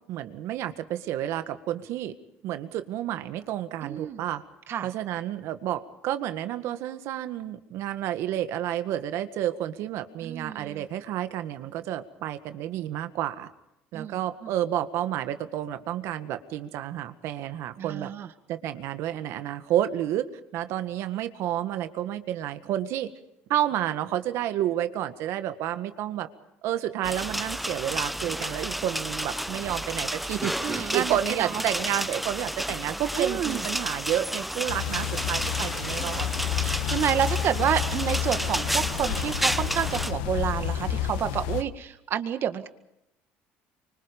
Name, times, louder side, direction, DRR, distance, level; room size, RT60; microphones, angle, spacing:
voice 1, 0.1-2.1 2.4-4.4 4.8-13.5 13.9-18.1 18.5-23.1 23.5-26.3 26.6-36.3, right 12 dB, 70° right, 9 dB, 1.8 m, -30 dB
voice 2, 3.8-4.2 4.7-4.9 10.2-10.8 13.9-14.5 17.8-18.3 30.6-31.6 33.2-33.6 36.6-42.7, right 9 dB, 50° right, 9 dB, 1.9 m, -29 dB
sound 1, 27.0-40.1, equal, ahead, 0.8 m, -31 dB
sound 2, 34.7-41.6, left 10 dB, 90° left, 1.2 m, -30 dB
25.5 x 24.5 x 5.3 m, 0.85 s
supercardioid pair, 95°, 5 cm